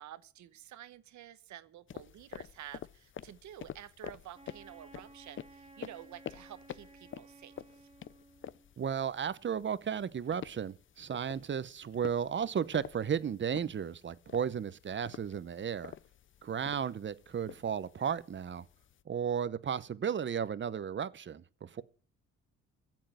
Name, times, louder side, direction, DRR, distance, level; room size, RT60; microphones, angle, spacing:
voice 1, 0.0-7.9, right 11 dB, 70° right, 1.1 m, -50 dB
sound 1, 1.9-19.0, left 9 dB, 40° left, 0.5 m, -49 dB
Wind instrument woodwind instrument, 4.3-8.7, right 3 dB, 20° right, 1.6 m, -56 dB
voice 2, 8.8-15.9 16.4-18.6 19.1-21.8, right 7 dB, 40° right, 0.8 m, -34 dB
12.0 x 7.6 x 9.1 m
cardioid pair, 90°, 30 cm